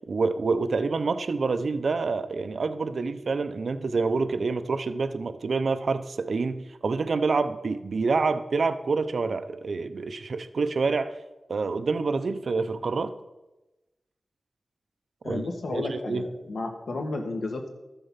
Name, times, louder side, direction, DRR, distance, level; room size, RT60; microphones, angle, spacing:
voice 1, 0.1-11.2 11.5-13.1 15.2-16.3, right 4 dB, 70° right, 11 dB, 0.7 m, -27 dB
voice 2, 15.2-17.7, left 2 dB, 85° left, 4 dB, 1.6 m, -32 dB
13.5 x 7.0 x 5.6 m, 1.0 s
wide cardioid pair, 115°, 0 cm